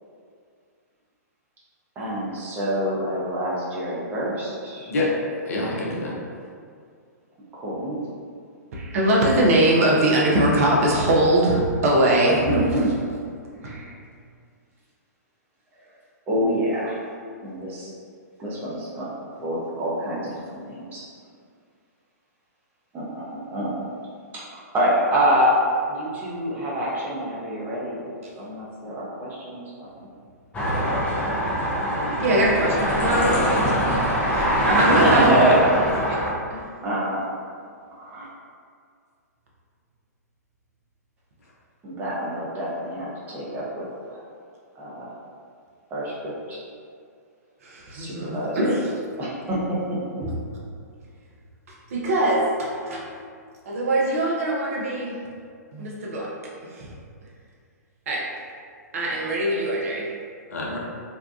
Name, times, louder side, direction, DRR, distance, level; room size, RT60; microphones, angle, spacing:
voice 1, 2.0-4.9 7.5-8.0 12.3-12.9 16.3-17.0 17.4-17.9 18.4-19.1 19.3-21.0 22.9-23.8 24.3-25.5 25.9-28.0 28.4-30.1 31.9-32.2 35.0-35.5 36.8-37.2 38.0-38.3 41.8-44.2 44.8-45.1 45.9-46.6 47.9-48.7 49.2-49.8, right 1 dB, 20° right, -7 dB, 0.7 m, -26 dB
voice 2, 5.5-6.2 34.8-35.0 35.3-35.6 60.5-60.8, left 2 dB, 60° left, -3 dB, 0.6 m, -27 dB
voice 3, 8.7-12.8 13.6-13.9 32.2-36.2 36.5-36.7 47.6-48.9 50.2-50.3 51.7-53.1 53.7-55.2 55.7-56.3 56.6-56.9 58.1-58.3 58.9-60.1, right 1 dB, 55° right, -3 dB, 0.6 m, -22 dB
sound 1, 30.5-36.3, equal, 15° left, 0.5 m, -22 dB
2.7 x 2.2 x 2.3 m, 2.2 s
figure-of-eight pair, 115°, 9 cm